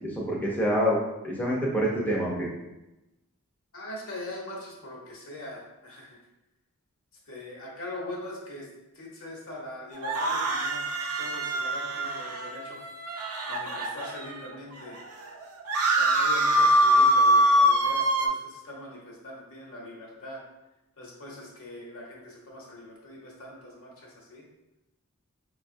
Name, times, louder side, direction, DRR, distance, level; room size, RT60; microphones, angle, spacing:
voice 1, 0.0-1.0 1.2-2.5, equal, 10° left, -5 dB, 0.6 m, -26 dB
voice 2, 3.7-6.2 7.3-8.7 8.9-10.9 11.2-12.8 13.5-15.0 15.9-20.4 21.0-24.4, left 1 dB, 65° left, -2 dB, 1.0 m, -42 dB
sound 1, 10.0-14.4 14.9-15.0 15.2-18.3, equal, 70° right, 0.5 m, -24 dB
4.8 x 2.3 x 2.6 m, 0.96 s
head